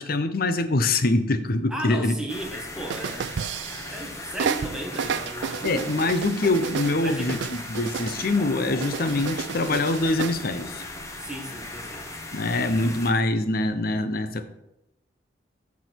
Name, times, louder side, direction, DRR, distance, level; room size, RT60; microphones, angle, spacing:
voice 1, 0.0-2.2 5.6-10.8 12.3-14.5, left 2 dB, 55° left, 10 dB, 0.8 m, -24 dB
voice 2, 1.7-3.3 3.9-6.0 7.0-7.3 11.2-12.1, right 1 dB, 5° right, 0 dB, 1.5 m, -35 dB
sound 1, 2.3-13.1, left 2 dB, 15° left, 1.0 m, -38 dB
sound 2, 2.9-4.1 4.4-8.4 8.8-10.4, right 7 dB, 70° right, 0.4 m, -32 dB
14.0 x 4.8 x 4.6 m, 0.87 s
head